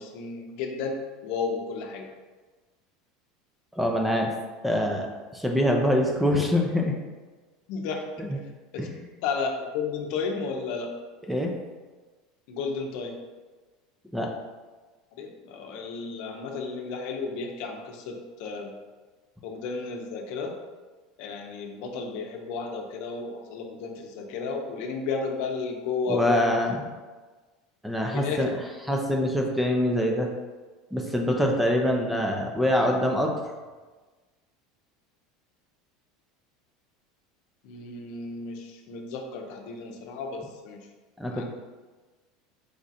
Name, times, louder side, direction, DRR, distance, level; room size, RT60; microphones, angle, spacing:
voice 1, 0.0-2.1 7.7-8.1 8.7-8.9 9.2-10.9 12.5-13.2 15.1-18.7 19.4-20.5 21.2-26.5 28.1-28.5 37.6-40.8 41.3-41.4, left 4 dB, 65° left, 2 dB, 0.7 m, -33 dB
voice 2, 3.8-4.3 4.6-5.1 5.3-7.0 8.2-8.4 8.8-8.9 11.3-11.5 14.1-14.3 26.1-26.8 27.8-28.5 28.9-30.3 30.9-33.4 41.2-41.4, left 1 dB, 5° right, 1 dB, 0.5 m, -24 dB
4.9 x 2.4 x 4.1 m, 1.3 s
supercardioid pair, 125°, 3 cm